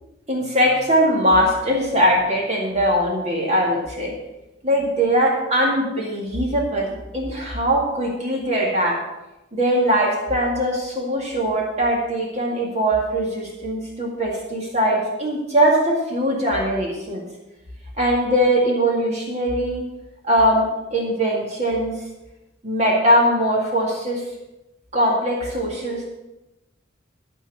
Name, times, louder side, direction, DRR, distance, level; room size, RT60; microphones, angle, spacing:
voice 1, 0.3-4.1 4.6-9.0 9.5-17.2 18.0-19.8 20.2-21.9 22.6-24.2 24.9-26.1, equal, 35° right, -2 dB, 2.0 m, -21 dB
13.0 x 4.6 x 8.4 m, 0.98 s
head